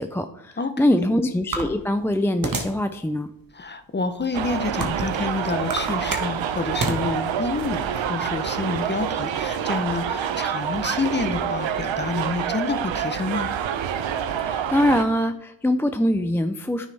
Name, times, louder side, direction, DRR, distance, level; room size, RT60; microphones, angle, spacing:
voice 1, 0.0-3.3 14.4-16.9, left 1 dB, 5° left, 8 dB, 0.4 m, -23 dB
voice 2, 0.6-1.1 3.5-13.5, left 3 dB, 25° left, 10 dB, 0.8 m, -28 dB
sound 1, 1.5-2.8 3.4-3.5 4.2-5.2 5.6-7.0, right 3 dB, 50° right, 1.6 m, -28 dB
sound 2, 4.3-15.0, right 8 dB, 85° right, 0.8 m, -27 dB
9.3 x 6.4 x 3.4 m, 0.78 s
cardioid pair, 65°, 44 cm